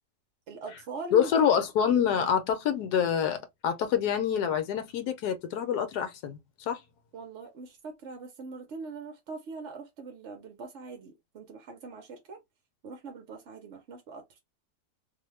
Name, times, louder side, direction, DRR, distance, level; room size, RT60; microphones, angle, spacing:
voice 1, 0.5-1.5 7.1-12.4 12.8-14.4, right 3 dB, 55° right, 0.8 m, -42 dB
voice 2, 1.1-6.4 6.7-6.8, left 8 dB, 70° left, 1.1 m, -26 dB
2.7 x 2.2 x 3.1 m
omnidirectional pair, 1.9 m